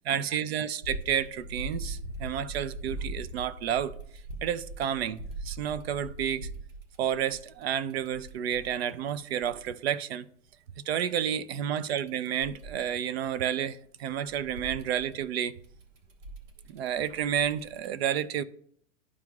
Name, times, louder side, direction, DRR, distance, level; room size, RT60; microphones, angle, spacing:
voice 1, 0.1-4.0 4.4-6.5 7.0-10.3 10.8-15.5 16.7-18.4, right 9 dB, 50° right, 0.6 m, -30 dB
sound 1, 0.8-9.7 11.9-13.7 14.0-17.9, right 2 dB, 75° right, 1.5 m, -41 dB
12.5 x 4.5 x 2.3 m
hypercardioid pair, 135°, 39 cm